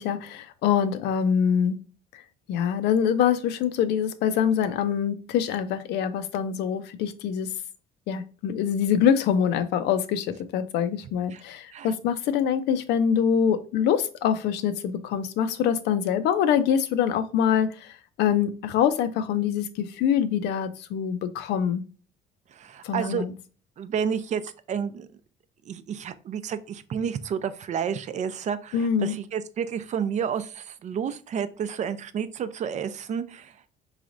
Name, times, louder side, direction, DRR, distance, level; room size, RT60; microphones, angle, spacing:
voice 1, 0.0-1.8 2.1-2.2 2.5-7.5 8.1-21.8 22.8-23.3 28.7-29.1, left 8 dB, 80° left, 0.5 m, -24 dB
voice 2, 22.5-23.2 23.8-25.1 25.7-33.6, right 7 dB, 45° right, 0.4 m, -30 dB
4.7 x 3.2 x 2.5 m
cardioid pair, 110°, 17 cm